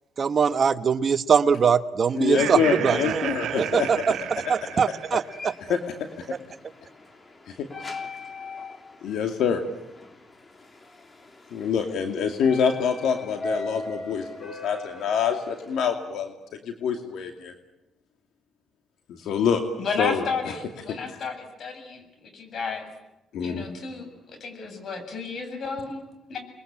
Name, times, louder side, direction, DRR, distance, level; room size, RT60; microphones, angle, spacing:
voice 1, 0.2-5.5, right 6 dB, 45° right, 12 dB, 1.1 m, -23 dB
voice 2, 2.2-3.9 5.7-5.8 7.6-7.7 9.0-9.6 11.5-17.5 19.1-19.6 20.0-20.5 21.0-21.2 23.3-23.6, left 7 dB, 80° left, 5 dB, 2.5 m, -26 dB
Laughter, 2.2-5.4, right 11 dB, 80° right, 1.8 m, -33 dB
sound 1, 3.3-15.9, left 2 dB, 30° left, 3.4 m, -41 dB
voice 3, 19.8-22.9 23.4-26.4, left 5 dB, 60° left, 6 dB, 7.9 m, -33 dB
29.5 x 22.0 x 8.9 m, 0.96 s
cardioid pair, 90°, 0 cm